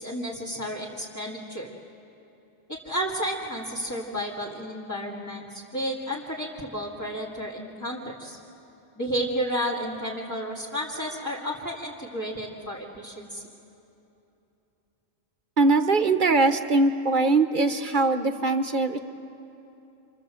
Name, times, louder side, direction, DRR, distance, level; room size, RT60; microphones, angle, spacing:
voice 1, 0.0-1.7 2.7-8.4 9.0-13.4, equal, 15° left, -6 dB, 2.3 m, -32 dB
voice 2, 15.6-19.0, right 3 dB, 40° right, 8 dB, 1.1 m, -21 dB
28.0 x 27.0 x 7.8 m, 2.9 s
omnidirectional pair, 1.3 m